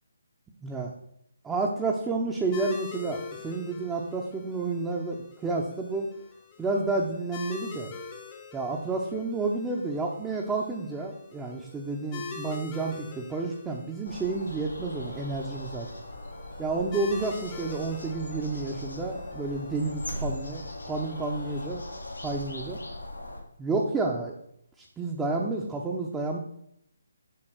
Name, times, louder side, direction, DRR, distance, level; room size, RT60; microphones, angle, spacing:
voice 1, 0.6-0.9 1.4-6.1 6.6-7.9 8.5-15.9 16.6-21.8 22.2-22.8 23.6-24.3 24.8-26.4, right 3 dB, 10° right, -2 dB, 0.8 m, -30 dB
sound 1, 2.5-21.7, left 5 dB, 20° left, 1.0 m, -44 dB
sound 2, 14.0-23.4, left 1 dB, 90° left, 2.0 m, -39 dB
7.8 x 3.8 x 6.1 m, 0.74 s
figure-of-eight pair, 145°, 0 cm